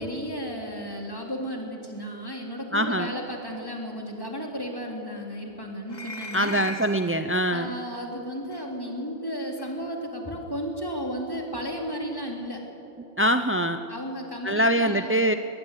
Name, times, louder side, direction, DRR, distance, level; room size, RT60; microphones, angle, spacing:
voice 1, 0.0-6.7 7.5-12.7 13.9-15.1, equal, 15° left, 0 dB, 3.6 m, -34 dB
voice 2, 2.7-3.1 6.3-7.7 13.2-13.8 14.4-15.3, equal, 20° right, 8 dB, 0.3 m, -23 dB
sound 1, 5.9-7.2 8.5-8.7 9.6-9.7, left 2 dB, 35° left, 2.3 m, -40 dB
21.5 x 20.5 x 9.9 m, 3.0 s
omnidirectional pair, 1.3 m